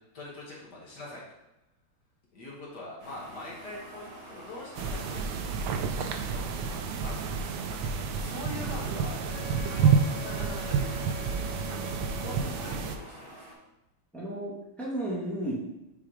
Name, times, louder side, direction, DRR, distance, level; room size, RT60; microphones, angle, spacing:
voice 1, 0.1-1.2 2.3-5.5 5.8-7.5 8.1-9.5 9.7-11.4 12.1-13.6, left 2 dB, 50° left, -4 dB, 2.0 m, -43 dB
sound 1, 3.0-13.5, right 1 dB, 25° right, 1.6 m, -48 dB
sound 2, 4.7-13.0, right 6 dB, 75° right, 1.2 m, -29 dB
Wind instrument woodwind instrument, 9.3-12.8, left 6 dB, 80° left, 2.1 m, -44 dB
voice 2, 14.1-15.5, right 1 dB, ahead, -5 dB, 1.5 m, -33 dB
5.9 x 4.7 x 4.9 m, 0.93 s
omnidirectional pair, 2.4 m